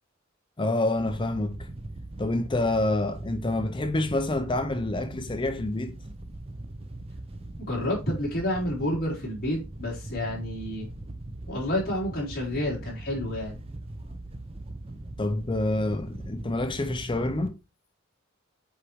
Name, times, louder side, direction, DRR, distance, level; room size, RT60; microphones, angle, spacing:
voice 1, 0.6-1.7 2.2-6.0 15.2-17.6, left 2 dB, 25° left, 0.6 m, -27 dB
Wind / Boat Water vehicle, 1.0-17.5, right 1 dB, 30° right, 0.7 m, -40 dB
voice 2, 7.6-10.9 11.5-13.6, left 1 dB, 50° left, 3.9 m, -29 dB
8.1 x 4.9 x 3.1 m
head